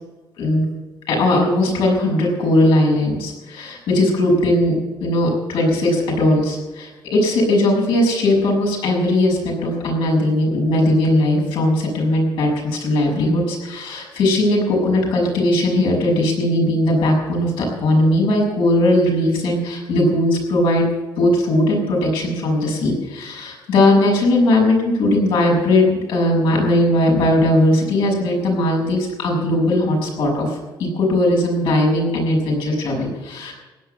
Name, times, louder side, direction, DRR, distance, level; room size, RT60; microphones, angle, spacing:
voice 1, 1.1-4.7 5.0-20.9 21.2-33.5, left 1 dB, 80° left, -1 dB, 6.6 m, -18 dB
16.5 x 10.5 x 7.9 m, 1.2 s
cardioid pair, 140°, 9 cm